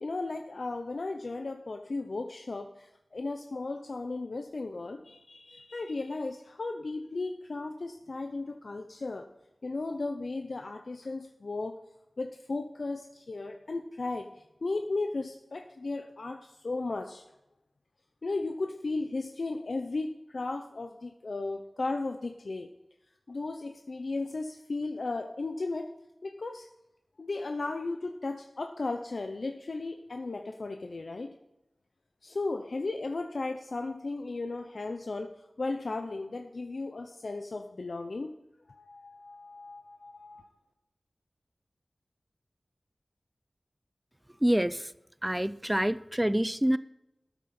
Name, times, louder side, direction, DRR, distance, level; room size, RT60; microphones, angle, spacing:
voice 1, 0.0-9.3 9.6-11.7 12.2-14.3 14.6-17.2 18.2-22.7 23.3-25.9 26.2-26.7 27.2-31.4 32.2-38.3 38.7-40.5, left 3 dB, 70° left, 5 dB, 0.7 m, -35 dB
voice 2, 44.4-44.9 45.2-46.8, right 1 dB, 10° right, 16 dB, 0.4 m, -26 dB
13.0 x 9.2 x 4.3 m, 0.91 s
wide cardioid pair, 70°, 0 cm